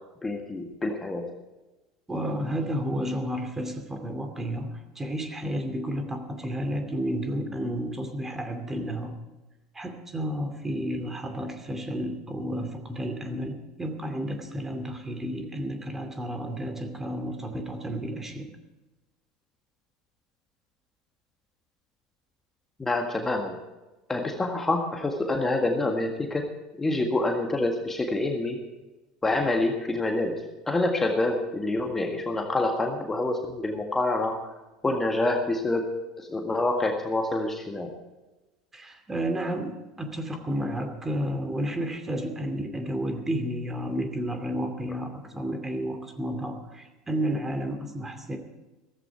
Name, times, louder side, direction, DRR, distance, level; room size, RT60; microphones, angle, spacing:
voice 1, 0.2-1.2 22.8-23.5 24.1-26.5 26.8-28.6 29.2-30.4 30.7-34.4 34.8-35.9 36.3-37.9, left 2 dB, 15° left, 3 dB, 1.7 m, -27 dB
voice 2, 2.1-9.2 9.7-18.5 38.7-48.4, equal, 15° right, 6 dB, 2.5 m, -31 dB
15.5 x 15.0 x 4.6 m, 1.1 s
figure-of-eight pair, 75°, 2 cm